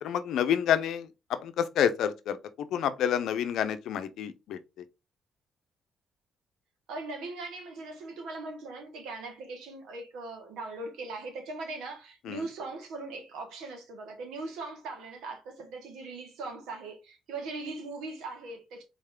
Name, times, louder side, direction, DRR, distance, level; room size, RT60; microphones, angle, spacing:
voice 1, 0.0-2.4 2.7-4.6 12.3-12.4, left 9 dB, 80° left, 0.6 m, -28 dB
voice 2, 6.9-18.8, right 3 dB, 90° right, 1.5 m, -40 dB
4.0 x 3.3 x 3.6 m
cardioid pair, 90°, 0 cm